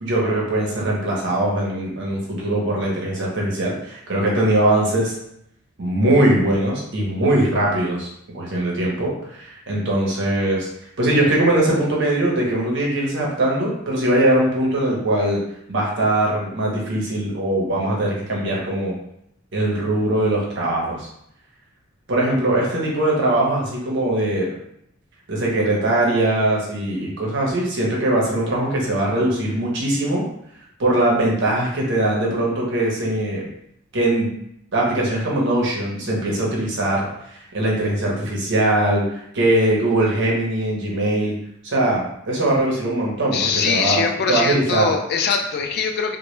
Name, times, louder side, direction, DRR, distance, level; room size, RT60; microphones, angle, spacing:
voice 1, 0.0-5.1 5.8-8.1 8.3-10.7 11.0-15.4 15.7-18.9 19.5-21.1 22.1-24.5 25.3-30.2 30.8-33.5 33.9-34.3 34.7-41.4 41.6-44.0 44.3-44.9, right 1 dB, 55° right, -3 dB, 0.7 m, -21 dB
voice 2, 43.3-46.2, left 5 dB, 50° left, 4 dB, 0.3 m, -22 dB
2.1 x 2.1 x 3.0 m, 0.74 s
head